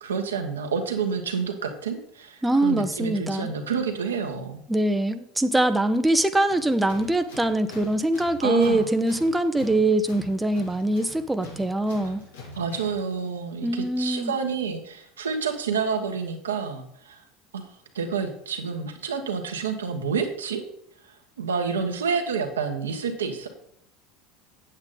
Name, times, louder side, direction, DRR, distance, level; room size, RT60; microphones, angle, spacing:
voice 1, 0.0-4.6 8.4-8.9 12.5-17.2 17.5-17.7 17.9-20.6 21.1-23.5, right 5 dB, 90° right, 4 dB, 1.3 m, -29 dB
voice 2, 2.4-3.5 4.7-12.2 13.6-14.3, right 1 dB, 10° right, 8 dB, 0.7 m, -23 dB
Tools, 6.5-13.1, left 3 dB, 80° left, 2.4 m, -45 dB
8.8 x 8.1 x 3.9 m, 0.70 s
hypercardioid pair, 85°, 0 cm